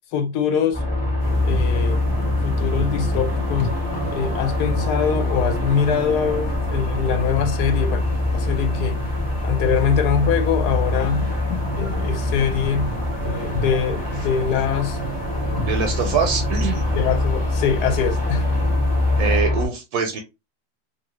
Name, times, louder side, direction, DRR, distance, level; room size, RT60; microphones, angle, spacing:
voice 1, 0.1-0.8 1.4-2.0 2.4-3.7 4.1-8.1 8.3-9.0 9.4-11.2 11.5-12.9 13.2-15.0 16.9-18.4, left 7 dB, 75° left, 1.1 m, -23 dB
sound 1, 0.7-19.7, left 1 dB, 5° left, 0.7 m, -24 dB
sound 2, 1.2-19.4, left 3 dB, 45° left, 0.9 m, -33 dB
voice 2, 15.7-16.9 19.2-20.2, right 6 dB, 75° right, 1.0 m, -23 dB
2.7 x 2.6 x 3.0 m
omnidirectional pair, 1.8 m